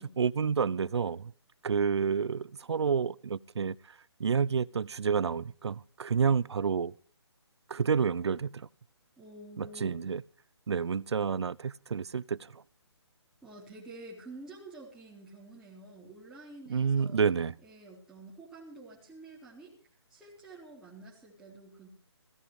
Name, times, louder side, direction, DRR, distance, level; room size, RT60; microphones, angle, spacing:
voice 1, 0.2-1.3 1.6-6.9 7.7-8.7 9.6-10.2 10.7-12.6 16.7-17.6, right 6 dB, 70° right, 0.7 m, -29 dB
voice 2, 9.2-10.0 13.4-17.2 17.6-19.7 20.1-21.9, right 2 dB, 5° right, 3.9 m, -49 dB
16.5 x 15.5 x 4.9 m
hypercardioid pair, 160°, 15 cm